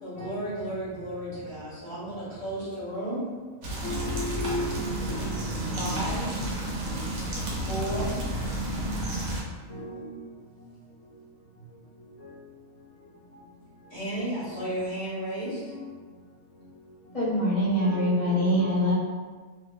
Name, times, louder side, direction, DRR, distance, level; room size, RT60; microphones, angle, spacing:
voice 1, 0.0-3.3 5.5-6.3 7.6-8.2 13.9-15.6, right 1 dB, 30° right, -13 dB, 1.1 m, -33 dB
sound 1, 3.6-9.4, right 1 dB, 60° right, 1.0 m, -31 dB
voice 2, 3.8-4.8 5.1-6.0 6.9-7.0 9.7-10.1 14.5-14.7 17.8-18.2, left 1 dB, 65° left, -8 dB, 0.9 m, -35 dB
voice 3, 17.1-18.9, equal, 25° left, -11 dB, 1.3 m, -24 dB
2.7 x 2.4 x 3.2 m, 1.4 s
omnidirectional pair, 1.5 m